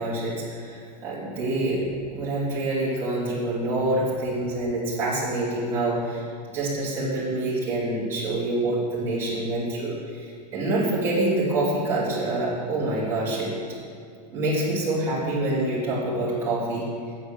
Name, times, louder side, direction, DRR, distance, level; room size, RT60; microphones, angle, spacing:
voice 1, 0.0-6.2 6.5-13.5 14.3-16.8, right 2 dB, 10° right, -11 dB, 3.1 m, -26 dB
8.5 x 7.8 x 7.1 m, 2.3 s
supercardioid pair, 175°, 21 cm